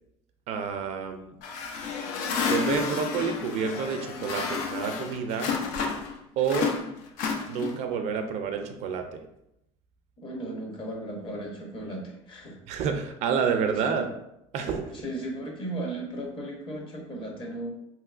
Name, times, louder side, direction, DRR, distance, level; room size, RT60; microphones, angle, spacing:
voice 1, 0.5-1.3 2.5-5.5 6.4-6.7 7.5-9.0 12.7-14.1 14.5-15.0, right 6 dB, 60° right, 6 dB, 0.4 m, -29 dB
sound 1, 1.4-6.1 6.4-7.9, left 5 dB, 70° left, 0.5 m, -31 dB
voice 2, 10.2-12.6 13.9-14.1 14.9-17.7, right 1 dB, 40° left, -1 dB, 1.0 m, -36 dB
3.0 x 2.9 x 2.4 m, 0.82 s
cardioid pair, 125°, 14 cm